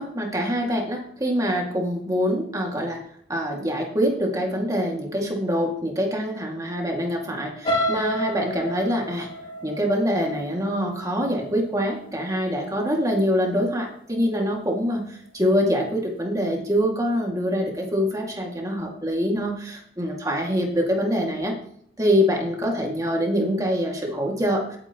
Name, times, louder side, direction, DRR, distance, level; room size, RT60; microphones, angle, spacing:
voice 1, 0.0-3.0 3.3-9.3 9.6-21.5 22.0-24.8, equal, 20° right, 0 dB, 2.1 m, -25 dB
sound 1, 7.6-11.6 12.1-12.4 12.7-12.8, equal, 30° left, 1.8 m, -29 dB
17.0 x 9.0 x 3.0 m, 0.64 s
head